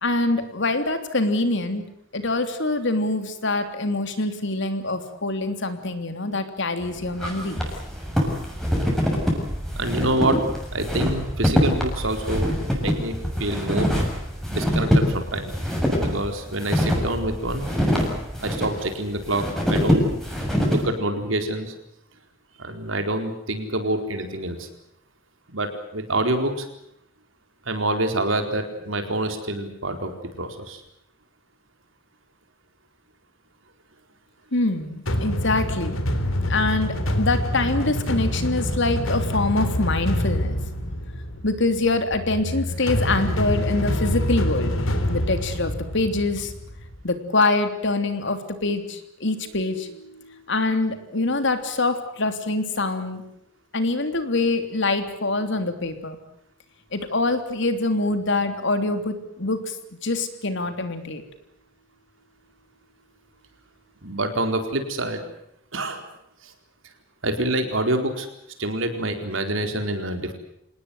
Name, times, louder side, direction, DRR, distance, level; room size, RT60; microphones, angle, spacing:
voice 1, 0.0-1.8 2.1-7.7 34.5-36.0 36.5-40.6 41.4-44.7 45.1-46.5 47.0-53.2 53.7-56.2 56.9-59.8 60.0-61.2, left 2 dB, 60° left, 8 dB, 3.2 m, -25 dB
sound 1, 6.8-20.8, equal, ahead, 7.1 m, -24 dB
voice 2, 9.8-10.4 10.7-13.9 14.5-15.5 16.0-17.7 18.4-20.1 20.7-21.7 22.6-24.7 25.5-26.7 27.7-30.1 30.4-30.8 64.0-65.2 65.7-66.0 66.4-66.5 67.2-68.3 68.6-70.3, right 1 dB, 70° right, 6 dB, 4.4 m, -26 dB
sound 2, 35.1-47.0, left 1 dB, 80° left, 3.5 m, -26 dB
27.0 x 19.5 x 7.9 m, 0.77 s
head